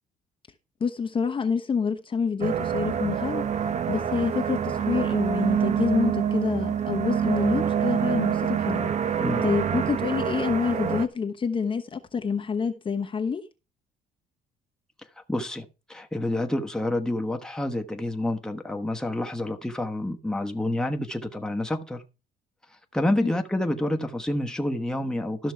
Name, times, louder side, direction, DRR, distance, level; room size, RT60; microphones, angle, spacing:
voice 1, 0.8-3.5 3.9-8.9 9.4-13.4 23.2-23.3, left 5 dB, 30° left, 1.0 m, -27 dB
sound 1, 2.4-11.1, right 8 dB, 45° right, 0.9 m, -26 dB
voice 2, 15.3-22.0 22.9-25.5, left 1 dB, 5° left, 1.2 m, -28 dB
13.0 x 6.2 x 4.6 m
cardioid pair, 110°, 17 cm